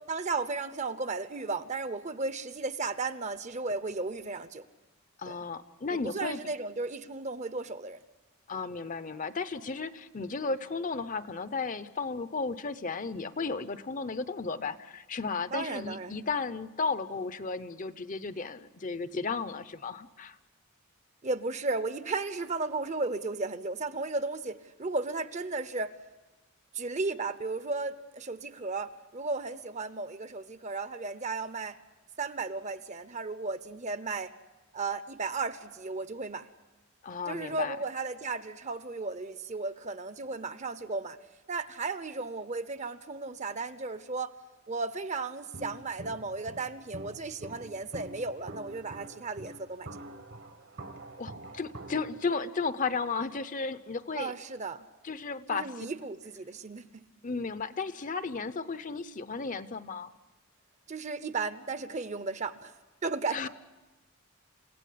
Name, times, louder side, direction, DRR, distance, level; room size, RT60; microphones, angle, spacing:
voice 1, 0.1-4.6 5.3-5.4 5.9-8.0 15.5-16.2 21.2-25.9 26.7-31.8 32.2-34.3 34.7-36.5 37.3-41.2 41.5-44.3 44.7-49.9 54.2-54.8 55.5-57.0 60.9-62.7 63.0-63.5, right 3 dB, 35° right, 0.8 m, -35 dB
voice 2, 5.2-6.4 8.5-20.4 37.0-37.8 51.2-54.3 55.0-55.7 57.2-60.1 63.3-63.5, left 4 dB, 35° left, 0.7 m, -34 dB
Walk footsteps, 45.5-52.2, right 1 dB, 55° right, 1.4 m, -46 dB
29.0 x 16.5 x 8.6 m
head